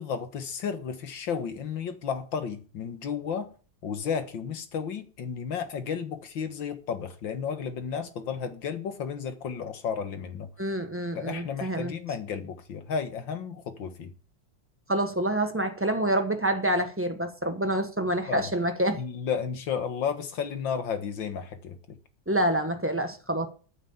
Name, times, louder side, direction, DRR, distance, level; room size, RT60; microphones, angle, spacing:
voice 1, 0.0-3.5 3.8-10.5 11.1-14.1 18.3-18.5 19.0-22.0, left 7 dB, 75° left, 2.1 m, -33 dB
voice 2, 10.6-11.9 14.9-19.0 22.3-23.5, right 1 dB, 10° right, 1.1 m, -27 dB
9.6 x 8.2 x 7.2 m
omnidirectional pair, 2.1 m